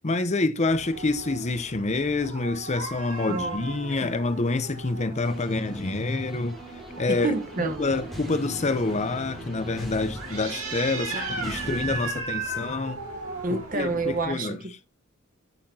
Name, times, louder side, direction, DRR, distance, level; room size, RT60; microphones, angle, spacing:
voice 1, 0.0-6.6 7.0-7.3 7.6-13.0 13.5-14.6, left 3 dB, 30° left, 0.7 m, -27 dB
sound 1, 0.7-14.3, right 3 dB, 80° right, 4.5 m, -37 dB
sound 2, 5.2-12.0, left 1 dB, ahead, 2.7 m, -41 dB
voice 2, 7.1-7.9 11.1-11.6 13.4-14.9, right 3 dB, 40° right, 1.1 m, -30 dB
13.0 x 5.7 x 2.8 m
head